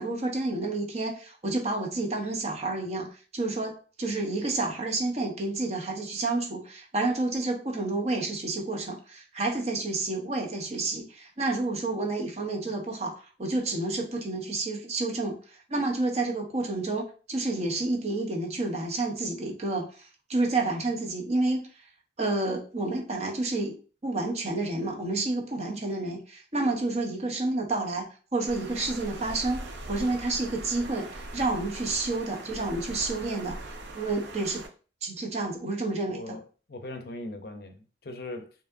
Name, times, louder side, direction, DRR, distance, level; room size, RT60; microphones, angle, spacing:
voice 1, 0.0-15.4 15.7-21.7 22.2-23.7 24.0-33.7 33.9-34.6 35.0-36.4, right 2 dB, 35° right, 0.8 m, -30 dB
Water, 28.5-34.7, right 2 dB, 75° right, 0.6 m, -41 dB
voice 2, 36.1-38.5, left 2 dB, 55° left, 0.6 m, -40 dB
4.8 x 2.8 x 2.5 m
head